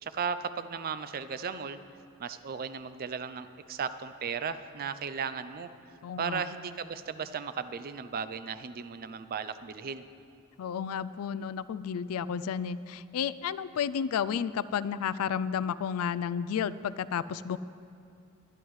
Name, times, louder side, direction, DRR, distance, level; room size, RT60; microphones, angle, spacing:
voice 1, 0.0-1.8 2.2-5.7 6.2-10.0, right 6 dB, 40° right, 12 dB, 0.4 m, -36 dB
voice 2, 6.0-6.4 10.6-17.6, left 7 dB, 70° left, 16 dB, 0.3 m, -32 dB
22.5 x 9.7 x 3.2 m, 2.4 s
head